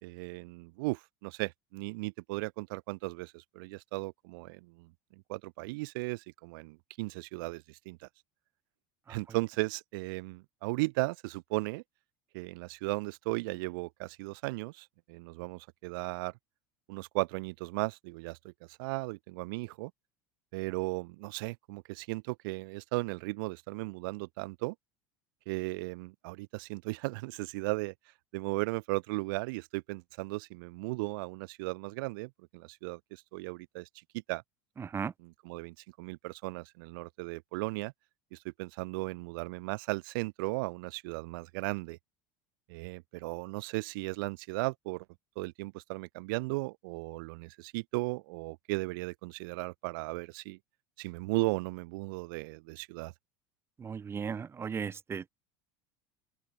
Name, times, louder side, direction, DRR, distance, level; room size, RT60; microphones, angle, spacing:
voice 1, 0.0-8.0 9.1-11.8 12.3-16.3 16.9-19.9 20.5-24.8 25.5-27.9 28.3-33.9 34.1-34.4 35.2-37.9 38.3-42.0 42.7-45.1 45.4-50.6 51.0-53.1, right 24 dB, 75° right, 2.0 m, -36 dB
voice 2, 53.8-55.3, right 6 dB, 20° right, 0.5 m, -36 dB
open air
supercardioid pair, 110°, 11 cm